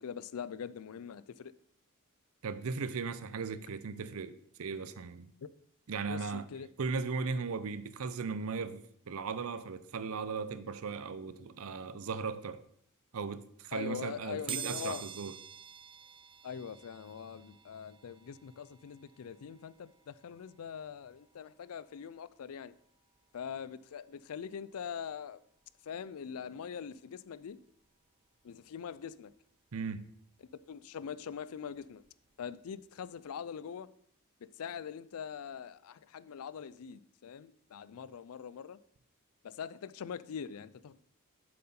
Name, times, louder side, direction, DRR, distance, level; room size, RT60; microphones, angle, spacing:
voice 1, 0.0-1.5 5.4-5.5 6.1-6.7 13.7-15.0 16.4-22.7 23.3-25.4 25.8-27.6 28.4-29.3 30.7-32.0 32.4-33.9 34.4-38.8 39.4-41.0, left 7 dB, 70° left, 0.4 m, -43 dB
voice 2, 2.4-5.3 5.9-6.4 6.8-12.6 13.1-15.3 29.7-30.1, right 5 dB, 65° right, 0.6 m, -37 dB
sound 1, 14.5-25.1 25.6-25.7 26.9-27.0 27.2-29.3 29.7-32.3 32.7-32.9 33.2-33.3, right 8 dB, 25° right, 0.4 m, -49 dB
7.6 x 7.5 x 4.3 m
head